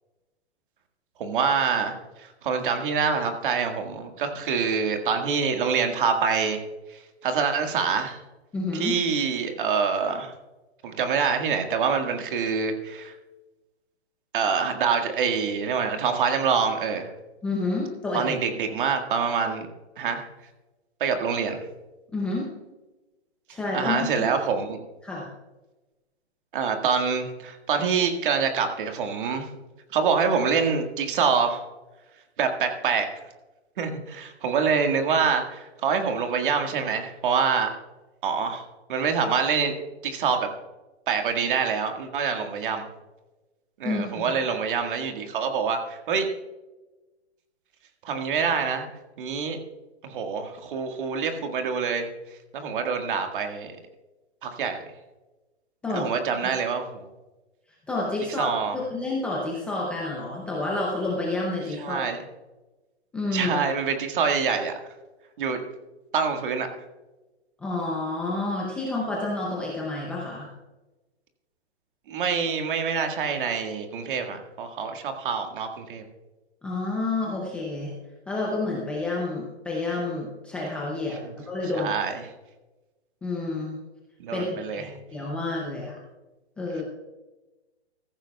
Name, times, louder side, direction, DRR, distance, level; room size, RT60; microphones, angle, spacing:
voice 1, 1.2-6.6 6.9-8.2 8.7-10.3 10.8-13.2 14.3-17.1 18.1-19.7 20.0-20.3 21.0-21.6 23.5-24.8 26.5-29.5 29.9-31.6 32.4-33.1 33.8-37.8 38.2-38.6 38.9-39.8 40.0-40.5 41.1-42.9 43.8-46.3 48.0-48.9 49.2-49.6 50.0-52.1 52.5-53.8 54.4-54.8 55.9-57.1 58.3-58.8 61.8-62.2 63.3-64.7 65.4-65.6 66.1-66.7 72.1-76.0 81.1-81.3 81.7-82.2 84.2-84.9, right 6 dB, 50° right, 5 dB, 1.8 m, -26 dB
voice 2, 8.5-8.9 17.4-18.3 22.1-22.5 23.5-24.1 25.0-25.3 43.8-44.2 55.8-56.1 57.9-62.0 63.1-63.6 67.6-70.5 76.6-77.9 78.3-81.9 83.2-83.7 84.3-86.0 86.6-86.8, left 2 dB, 5° left, -4 dB, 0.5 m, -29 dB
14.5 x 14.5 x 2.3 m, 1.1 s
hypercardioid pair, 155°, 34 cm